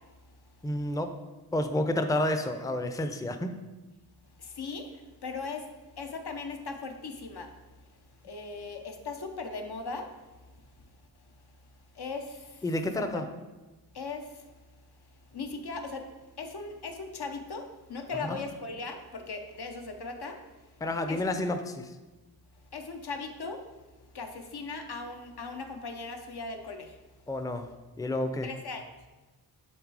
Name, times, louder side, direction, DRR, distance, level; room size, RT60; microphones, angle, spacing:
voice 1, 0.6-1.1 1.5-3.5 12.6-13.3 18.3-18.4 20.8-21.9 27.3-27.7 28.0-28.5, left 1 dB, 10° left, 8 dB, 0.5 m, -30 dB
voice 2, 4.4-5.6 6.0-7.5 8.2-10.1 12.0-12.6 13.0-13.3 13.9-14.5 15.3-16.1 16.4-20.4 21.1-21.2 22.7-23.6 24.1-26.9 28.4-28.8, left 4 dB, 70° left, 5 dB, 0.8 m, -38 dB
7.3 x 3.4 x 4.7 m, 1.2 s
cardioid pair, 40°, 40 cm